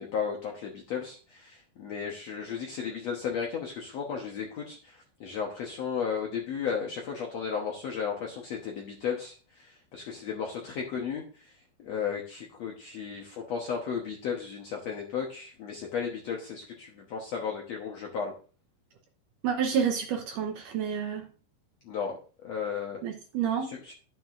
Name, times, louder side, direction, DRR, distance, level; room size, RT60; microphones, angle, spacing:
voice 1, 0.0-18.3 21.8-22.2 22.4-23.0 23.6-23.9, left 6 dB, 65° left, 0 dB, 1.7 m, -34 dB
voice 2, 19.4-21.2 23.0-23.7, right 7 dB, 70° right, 4 dB, 2.1 m, -29 dB
11.5 x 7.8 x 2.6 m, 0.37 s
omnidirectional pair, 4.5 m